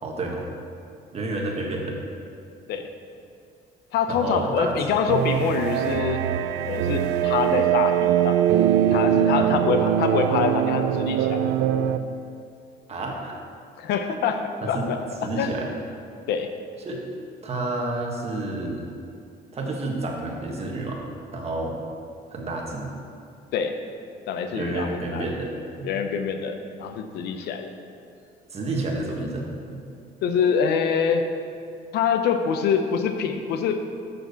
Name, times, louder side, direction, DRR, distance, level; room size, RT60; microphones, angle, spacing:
voice 1, 0.0-0.4 1.1-2.0 4.1-4.7 9.3-9.5 12.9-13.3 14.6-14.9 15.2-15.7 16.8-17.0 17.4-18.8 19.5-21.0 21.3-21.7 22.3-22.9 24.5-25.5 25.8-25.9 28.5-29.4 29.7-29.8, right 2 dB, 35° right, 0 dB, 1.6 m, -29 dB
voice 2, 3.9-6.2 6.7-8.4 8.9-11.5 13.8-15.0 15.4-15.5 16.3-16.5 23.5-23.8 24.3-25.3 25.8-27.7 30.2-31.2 31.9-33.8, left 6 dB, 80° left, 7 dB, 0.7 m, -25 dB
sound 1, 5.1-12.0, right 10 dB, 80° right, 0.4 m, -22 dB
6.9 x 6.2 x 6.9 m, 2.4 s
cardioid pair, 110°, 17 cm